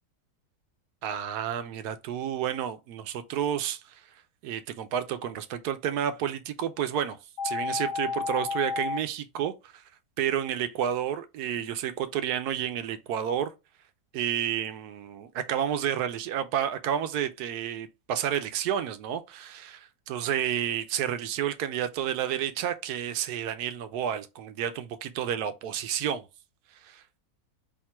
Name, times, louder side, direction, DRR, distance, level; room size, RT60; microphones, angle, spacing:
voice 1, 1.0-4.0 4.4-7.2 7.4-9.8 10.2-13.5 14.1-26.3 26.8-27.2, right 9 dB, 80° right, 1.1 m, -30 dB
sound 1, 7.4-9.0, left 5 dB, 85° left, 1.2 m, -31 dB
3.6 x 2.5 x 4.3 m
omnidirectional pair, 1.7 m